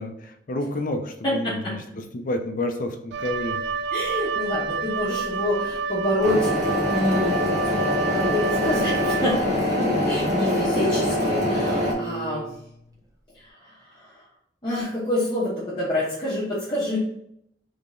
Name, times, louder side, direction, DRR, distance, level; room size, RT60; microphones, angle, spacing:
voice 1, 0.0-1.8 2.1-3.6, left 1 dB, 50° left, 5 dB, 0.6 m, -29 dB
voice 2, 1.2-1.7 3.9-7.4 7.7-12.5 13.3-14.2 14.6-17.0, left 1 dB, 25° left, -9 dB, 1.1 m, -27 dB
Wind instrument woodwind instrument, 3.1-9.7, right 4 dB, 75° right, 0.3 m, -29 dB
sound 1, 6.2-11.9, left 1 dB, 40° right, 1.1 m, -24 dB
Bowed string instrument, 8.8-12.9, right 1 dB, 20° right, 0.7 m, -34 dB
3.8 x 3.5 x 3.7 m, 0.75 s
head